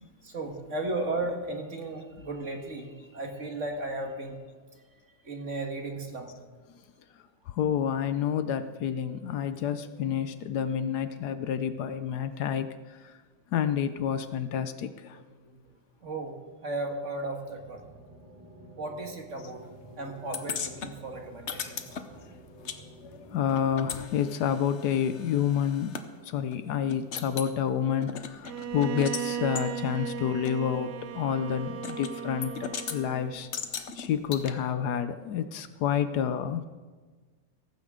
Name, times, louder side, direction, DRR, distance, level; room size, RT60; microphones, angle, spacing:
voice 1, 0.2-4.5 5.2-6.3 15.1-15.6 16.0-16.3 16.6-17.9 18.8-19.6 20.0-22.0, right 2 dB, 45° right, 3 dB, 2.0 m, -35 dB
voice 2, 7.5-12.7 13.0-13.1 13.5-15.2 23.0-26.0 26.2-33.5 34.0-36.7, left 8 dB, 70° left, 11 dB, 1.2 m, -29 dB
sound 1, 17.5-23.9, right 1 dB, 15° right, 1.7 m, -51 dB
sound 2, 20.3-22.8 23.1-26.1 26.5-26.6 26.9-27.5 28.0-29.3 29.6-29.7 30.5-30.6 31.8-32.1 32.4-33.0 33.5-34.5, left 7 dB, 50° left, 1.0 m, -37 dB
Bowed string instrument, 28.4-33.5, right 8 dB, 70° right, 1.4 m, -36 dB
17.0 x 15.0 x 3.7 m, 1.4 s
omnidirectional pair, 1.9 m